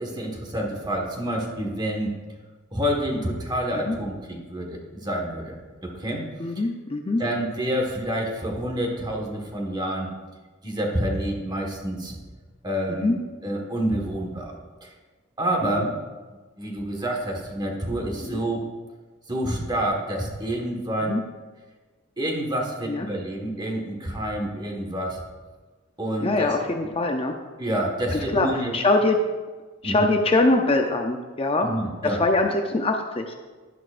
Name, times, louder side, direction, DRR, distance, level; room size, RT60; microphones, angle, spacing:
voice 1, 0.0-2.1 2.7-6.2 7.2-10.1 10.6-12.2 12.6-14.6 14.8-14.9 15.4-15.9 16.6-18.6 19.3-21.1 22.2-25.2 26.0-26.5 27.6-28.7 29.8-30.0 31.6-32.2, right 1 dB, 20° right, 1 dB, 1.5 m, -28 dB
voice 2, 6.4-7.2 12.9-13.2 15.6-15.9 18.2-18.4 21.0-21.2 22.9-23.1 26.2-27.3 28.1-28.5 28.7-29.2 29.8-31.7 32.0-33.3, left 2 dB, 30° left, 4 dB, 0.6 m, -23 dB
11.0 x 11.0 x 2.5 m, 1.3 s
head